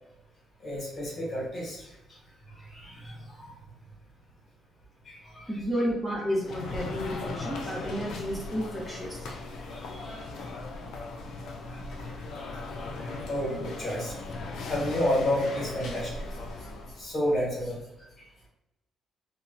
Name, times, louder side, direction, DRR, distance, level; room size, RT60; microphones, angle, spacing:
voice 1, 0.6-1.9 2.5-3.5 5.0-5.5 9.9-10.5 11.7-11.8 12.4-12.5 12.8-14.1 14.7-16.2 17.0-17.8, left 1 dB, 45° left, -5 dB, 1.3 m, -31 dB
voice 2, 5.5-9.2, equal, 5° right, -6 dB, 0.9 m, -31 dB
sound 1, 6.4-17.1, left 3 dB, 80° left, 0.4 m, -38 dB
2.7 x 2.2 x 2.5 m, 0.95 s
cardioid pair, 90°, 0 cm